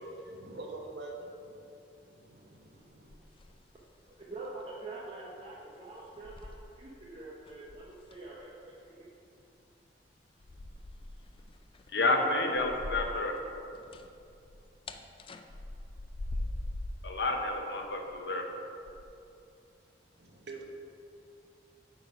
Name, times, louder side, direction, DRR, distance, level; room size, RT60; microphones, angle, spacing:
voice 1, 0.2-1.7 2.0-3.2 20.2-20.6, right 2 dB, 70° right, 1 dB, 0.9 m, -46 dB
sound 1, 2.8-3.9 4.2-4.5 5.3-5.4 6.0-7.1 7.4-8.4 10.4-13.4 13.6-17.1 17.8-18.2 18.8-19.0, left 1 dB, 30° left, 0.4 m, -42 dB
voice 2, 4.2-6.5 6.8-8.8, right 2 dB, 35° right, -5 dB, 0.7 m, -45 dB
voice 3, 11.9-13.3 17.0-18.5, left 2 dB, 70° left, 3 dB, 0.8 m, -29 dB
8.8 x 4.0 x 5.3 m, 2.7 s
head